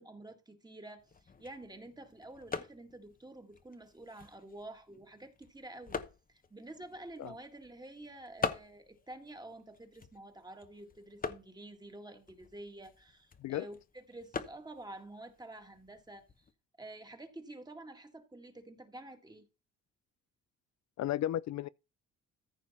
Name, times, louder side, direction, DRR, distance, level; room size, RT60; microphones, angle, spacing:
voice 1, 0.0-6.0 6.3-16.5 16.8-19.5, right 2 dB, 15° right, 1.9 m, -49 dB
sound 1, 1.0-16.5, left 4 dB, 30° left, 1.0 m, -45 dB
voice 2, 21.0-21.7, left 13 dB, 65° left, 0.5 m, -34 dB
14.5 x 5.1 x 4.2 m
cardioid pair, 90°, 30 cm